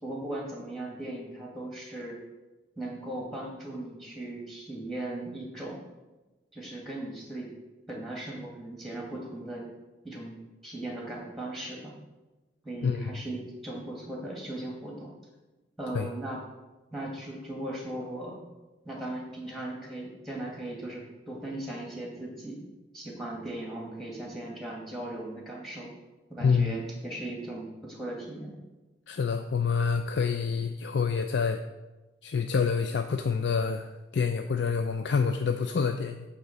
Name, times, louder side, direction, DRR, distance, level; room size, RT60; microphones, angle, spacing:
voice 1, 0.0-2.2 2.8-5.8 6.5-7.5 7.9-9.7 10.0-10.4 10.6-11.9 12.6-15.1 15.8-16.4 16.9-18.4 18.8-22.6 22.9-25.9 26.3-28.6, right 1 dB, ahead, -2 dB, 2.0 m, -38 dB
voice 2, 26.4-26.7 29.1-31.6 32.2-36.3, left 5 dB, 75° left, 6 dB, 0.4 m, -27 dB
8.7 x 3.6 x 6.8 m, 1.1 s
head